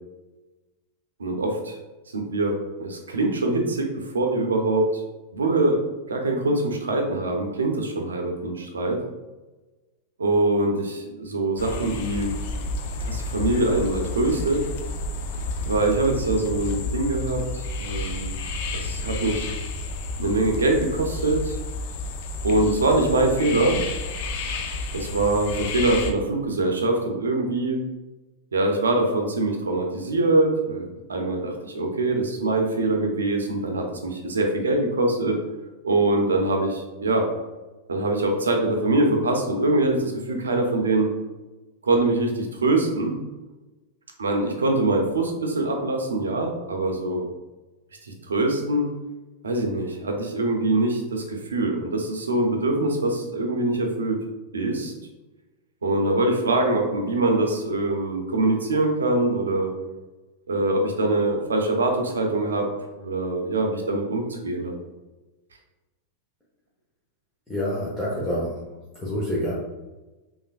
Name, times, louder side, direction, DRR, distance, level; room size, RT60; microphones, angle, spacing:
voice 1, 1.2-1.8 2.1-2.5 2.8-5.0 5.3-5.8 6.1-9.0 10.2-12.3 13.0-14.6 15.7-18.3 18.7-19.5 20.2-21.6 22.4-23.8 24.9-27.8 28.5-35.4 35.8-37.3 37.9-41.1 41.8-43.2 44.2-47.3 48.0-48.9 49.4-54.2 54.5-54.9 55.8-59.7 60.5-62.7 63.0-64.7, right 2 dB, 90° right, 2 dB, 0.5 m, -23 dB
sound 1, 11.6-26.1, left 2 dB, 60° left, 0.4 m, -31 dB
voice 2, 67.5-68.6 68.9-69.5, equal, 10° left, -7 dB, 0.8 m, -27 dB
3.3 x 2.4 x 2.4 m, 1.1 s
hypercardioid pair, 105°, 0 cm